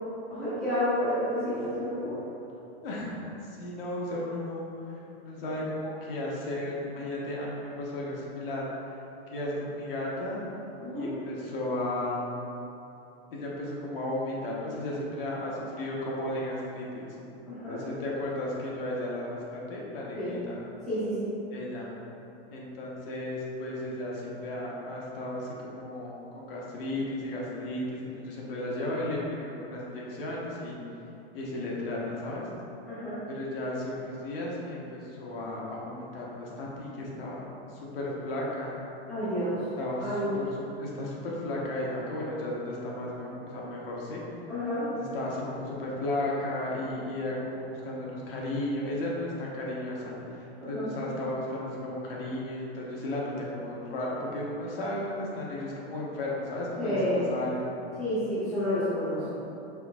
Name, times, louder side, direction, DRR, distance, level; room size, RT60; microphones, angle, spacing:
voice 1, 0.3-2.2 10.8-11.1 17.4-17.8 20.2-20.3 20.9-21.3 32.9-33.2 39.1-39.6 40.0-40.4 44.5-44.9 50.6-50.9 56.8-57.3 58.0-59.2, equal, ahead, -15 dB, 0.4 m, -30 dB
voice 2, 2.8-3.2 3.6-8.7 9.3-10.4 10.9-12.3 13.3-17.1 17.7-20.6 21.5-21.9 22.5-30.8 31.3-32.5 33.3-37.4 37.7-38.8 39.8-44.2 44.9-57.7, left 1 dB, 60° left, -4 dB, 1.0 m, -34 dB
4.6 x 3.8 x 2.3 m, 2.8 s
supercardioid pair, 175°, 32 cm